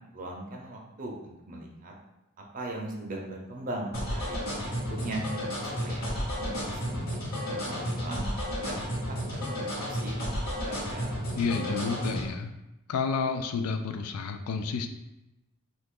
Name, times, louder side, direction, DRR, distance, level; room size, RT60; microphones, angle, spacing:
voice 1, 0.1-1.9 2.5-5.3 5.6-8.3 8.6-8.8 9.1-11.2, right 1 dB, 40° right, -1 dB, 0.6 m, -39 dB
sound 1, 3.9-12.3, equal, 45° left, 1.1 m, -32 dB
voice 2, 11.4-12.5 12.9-14.9, left 5 dB, 80° left, 7 dB, 0.4 m, -30 dB
2.8 x 2.4 x 3.6 m, 0.94 s
head